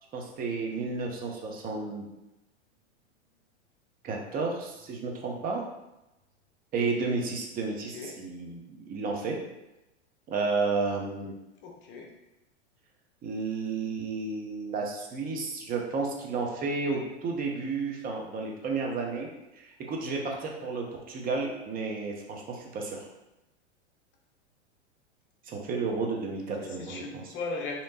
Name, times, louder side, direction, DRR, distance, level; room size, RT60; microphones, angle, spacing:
voice 1, 0.1-2.0 4.0-5.6 6.7-9.4 10.3-11.3 13.2-19.3 19.6-23.0 25.5-27.3, right 4 dB, 25° right, 0 dB, 0.7 m, -32 dB
voice 2, 7.7-8.2 11.6-12.1 26.5-27.8, left 3 dB, 30° left, 0 dB, 0.8 m, -38 dB
3.3 x 2.9 x 2.7 m, 0.95 s
hypercardioid pair, 105°, 35 cm